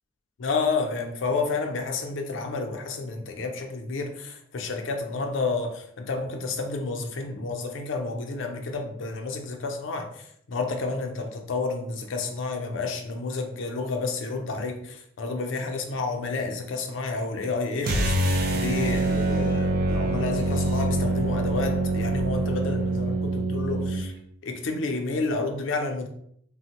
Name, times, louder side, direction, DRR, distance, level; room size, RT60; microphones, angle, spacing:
voice 1, 0.4-24.1 24.4-26.1, left 3 dB, 75° left, 4 dB, 0.5 m, -30 dB
sound 1, 17.8-24.1, right 2 dB, 50° right, 0.4 m, -25 dB
3.4 x 2.1 x 2.8 m, 0.70 s
head